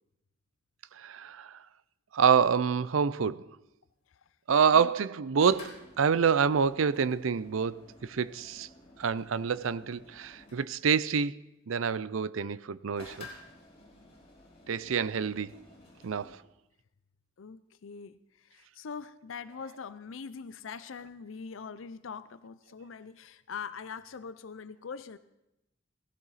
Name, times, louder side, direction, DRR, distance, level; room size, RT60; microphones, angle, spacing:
voice 1, 1.0-1.5 2.1-3.4 4.5-8.7 9.0-11.4 11.7-13.3 14.7-15.5 16.0-16.3, right 6 dB, 90° right, 0.5 m, -27 dB
sound 1, 5.4-10.8 13.0-16.3, left 2 dB, 30° left, 5.0 m, -53 dB
voice 2, 17.4-18.2 18.5-25.2, left 6 dB, 75° left, 0.5 m, -42 dB
17.5 x 16.0 x 4.1 m
head